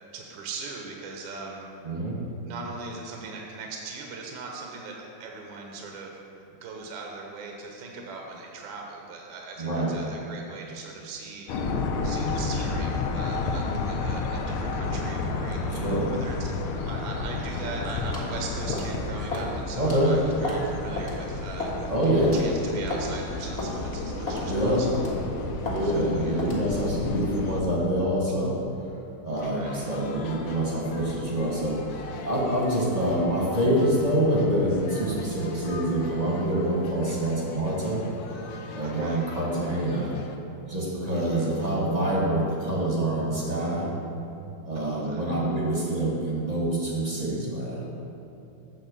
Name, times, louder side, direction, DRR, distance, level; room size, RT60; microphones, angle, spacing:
voice 1, 0.1-1.6 2.4-6.2 6.5-11.5 12.0-16.5 16.9-21.7 22.0-25.1 25.8-26.6 29.5-29.9 38.8-39.2 41.1-41.6 44.7-45.3, right 4 dB, 75° right, 0 dB, 1.4 m, -40 dB
voice 2, 1.8-2.2 9.6-10.0 15.7-16.1 19.8-20.1 21.9-22.4 24.5-24.8 25.6-28.6 29.2-38.0 38.7-40.1 40.7-43.9 44.6-47.8, right 1 dB, 25° right, -4 dB, 1.0 m, -26 dB
sound 1, 11.5-27.6, left 3 dB, 85° left, 1.5 m, -31 dB
sound 2, 18.1-18.3 18.7-18.9 19.3-19.5 19.8-20.0 20.4-20.7 21.0-21.1 21.6-21.8 22.2-22.4 22.9-23.1 23.6-23.7 24.3-24.5 24.9-25.2 25.7-25.8 26.4-26.6, left 2 dB, 25° left, 1.2 m, -32 dB
sound 3, 29.4-40.4, left 3 dB, 70° left, 0.9 m, -41 dB
7.5 x 4.1 x 6.7 m, 2.7 s
omnidirectional pair, 2.3 m